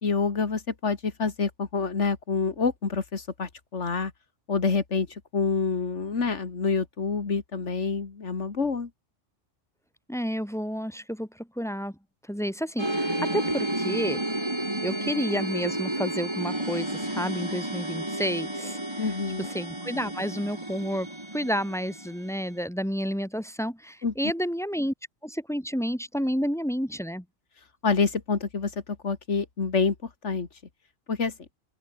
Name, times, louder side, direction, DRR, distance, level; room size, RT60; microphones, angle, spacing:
voice 1, 0.0-4.1 4.5-5.1 5.3-8.9 19.0-19.5 24.0-24.1 27.8-28.7 29.0-29.9 30.2-30.5 31.1-31.3, left 4 dB, 65° left, 2.4 m, -27 dB
voice 2, 10.1-11.9 12.3-14.2 14.8-24.9 25.2-27.2, equal, ahead, 1.5 m, -30 dB
sound 1, 12.8-22.5, right 1 dB, 20° right, 3.7 m, -31 dB
omnidirectional pair, 1.3 m